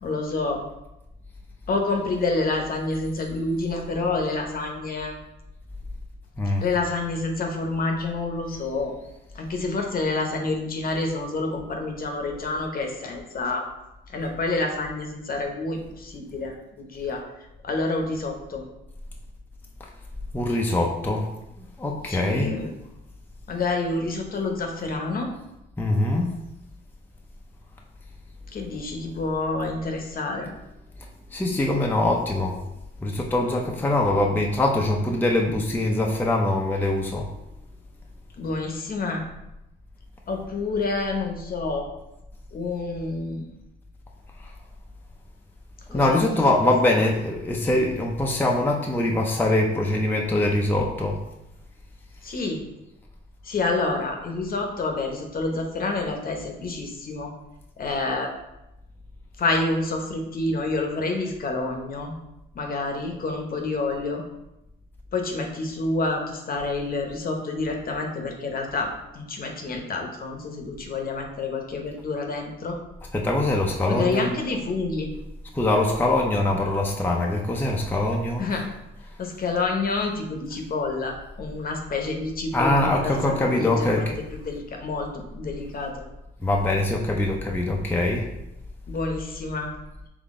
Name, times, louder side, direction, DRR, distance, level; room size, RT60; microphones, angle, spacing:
voice 1, 0.0-0.6 1.7-5.2 6.6-8.9 9.3-13.7 14.1-17.2 17.6-18.6 22.1-22.7 23.5-25.3 28.5-30.5 38.4-39.2 40.3-41.9 42.5-43.5 45.9-46.2 52.2-52.6 53.4-57.3 57.8-58.3 59.4-62.1 62.5-64.2 65.1-68.9 69.1-72.8 73.9-75.1 78.4-78.6 79.2-84.1 84.4-85.9 88.9-89.7, left 3 dB, 45° left, 3 dB, 0.9 m, -28 dB
voice 2, 20.3-21.3 21.6-22.6 25.8-26.4 31.3-32.6 33.0-37.3 44.4-44.5 45.9-51.2 73.1-74.3 75.5-78.6 82.5-84.1 86.4-88.3, left 1 dB, 10° left, -1 dB, 0.5 m, -23 dB
3.8 x 3.4 x 3.6 m, 0.89 s
cardioid pair, 90°, 20 cm